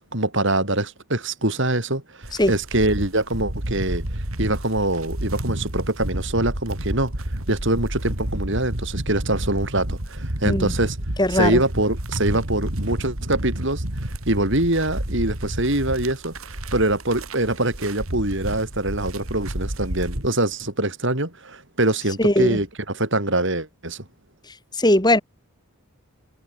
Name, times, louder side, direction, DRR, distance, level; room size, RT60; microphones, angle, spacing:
voice 1, 0.0-4.0 4.4-7.1 7.5-11.0 11.3-13.8 14.3-24.0, right 1 dB, 60° right, 5.4 m, -24 dB
sound 1, 2.2-20.3, right 1 dB, 80° right, 3.8 m, -30 dB
voice 2, 11.2-11.6 22.2-22.6 24.7-25.2, left 1 dB, 20° left, 4.9 m, -19 dB
head